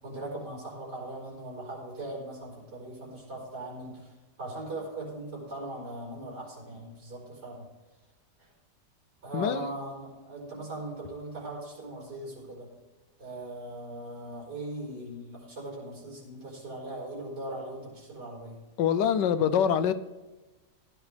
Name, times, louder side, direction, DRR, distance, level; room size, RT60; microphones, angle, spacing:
voice 1, 0.0-4.1 4.4-7.7 8.4-8.5 9.2-12.7 13.2-18.6, right 2 dB, 70° right, 5.2 m, -39 dB
voice 2, 9.3-9.7 18.8-19.9, left 8 dB, 85° left, 1.4 m, -24 dB
16.0 x 10.5 x 3.4 m
omnidirectional pair, 1.8 m